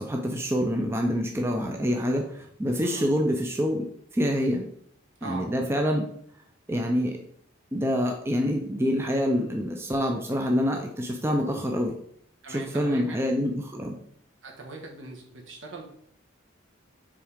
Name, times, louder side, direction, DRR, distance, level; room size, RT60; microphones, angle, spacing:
voice 1, 0.0-3.9 4.1-4.7 5.2-6.1 6.7-7.2 7.7-11.9 12.5-14.0, equal, 10° right, 2 dB, 0.4 m, -26 dB
voice 2, 5.2-5.5 10.3-10.4 12.4-13.3 14.4-15.9, right 2 dB, 70° right, 0 dB, 1.4 m, -40 dB
7.4 x 3.6 x 3.5 m, 0.68 s
head